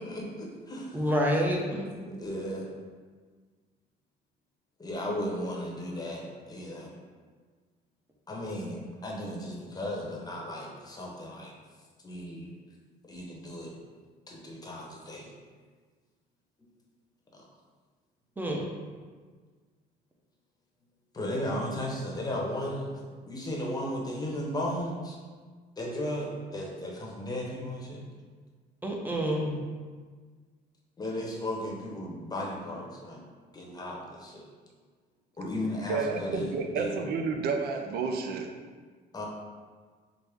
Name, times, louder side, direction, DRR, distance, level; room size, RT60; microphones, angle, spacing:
voice 1, 0.0-1.0 2.0-2.7 4.8-6.9 8.3-11.5 12.0-12.5 13.1-13.7 14.3-15.3 17.3-17.4 21.1-22.9 23.2-25.2 25.8-28.0 31.0-33.2 33.5-34.4 35.4-36.9 39.1-39.3, left 1 dB, 20° left, -2 dB, 0.8 m, -35 dB
voice 2, 0.9-2.0 18.4-18.6 28.8-29.6, equal, 10° right, -1 dB, 0.6 m, -28 dB
voice 3, 35.9-38.5, right 4 dB, 70° right, 4 dB, 0.5 m, -30 dB
4.9 x 2.0 x 3.4 m, 1.5 s
cardioid pair, 110°, 17 cm